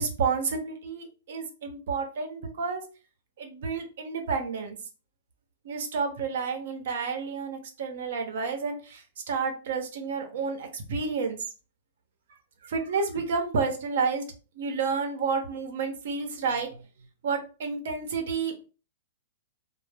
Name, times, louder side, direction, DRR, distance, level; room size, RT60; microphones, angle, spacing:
voice 1, 0.0-2.8 3.4-4.8 5.6-11.4 12.6-14.2 14.6-16.7 17.2-18.5, right 5 dB, 70° right, 4 dB, 0.7 m, -30 dB
2.0 x 2.0 x 3.2 m, 0.34 s
hypercardioid pair, 120°, 0 cm